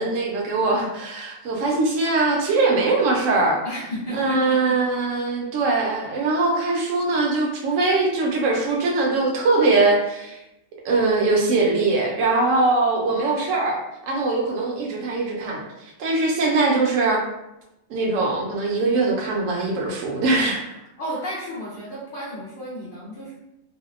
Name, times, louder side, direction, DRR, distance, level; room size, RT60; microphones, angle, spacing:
voice 1, 0.0-3.6 4.1-10.4 10.8-13.8 14.1-15.6 16.0-17.2 17.9-20.6, right 3 dB, 75° right, -1 dB, 0.9 m, -21 dB
voice 2, 3.6-4.8 5.4-5.5 21.0-23.3, equal, 60° left, -7 dB, 0.5 m, -33 dB
2.6 x 2.0 x 2.4 m, 0.90 s
omnidirectional pair, 1.4 m